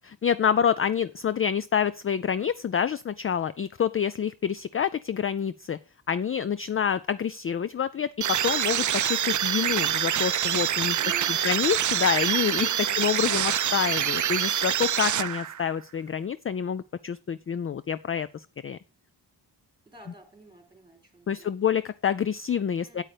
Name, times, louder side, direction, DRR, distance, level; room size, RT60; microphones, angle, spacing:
voice 1, 0.0-5.8 6.1-11.0 11.3-18.8 21.3-23.0, left 8 dB, 35° left, 16 dB, 0.4 m, -27 dB
sound 1, 8.2-15.7, right 10 dB, 45° right, 0.5 m, -26 dB
voice 2, 11.0-11.6 12.3-13.0 19.9-21.5 22.7-23.0, right 2 dB, 10° right, 4 dB, 4.1 m, -48 dB
9.0 x 8.6 x 4.9 m, 0.33 s
wide cardioid pair, 95°, 41 cm